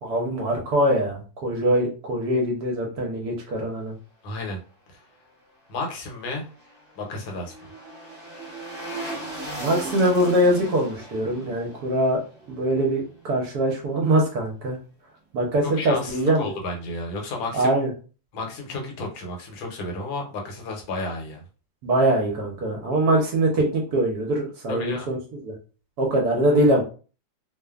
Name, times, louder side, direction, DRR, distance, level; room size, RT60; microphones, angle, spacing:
voice 1, 0.0-3.9 9.6-12.2 12.5-14.8 15.3-16.5 17.5-17.9 21.8-25.5 26.0-26.8, right 1 dB, 65° right, 0 dB, 1.1 m, -23 dB
voice 2, 4.2-4.6 4.9-5.0 5.7-6.5 7.0-7.5 15.8-17.7 18.3-21.4 24.7-25.1, left 2 dB, 85° left, 1 dB, 1.6 m, -32 dB
sound 1, 6.2-13.4 13.7-13.8, right 1 dB, 45° right, 1.2 m, -38 dB
3.2 x 2.0 x 2.3 m, 0.36 s
omnidirectional pair, 2.1 m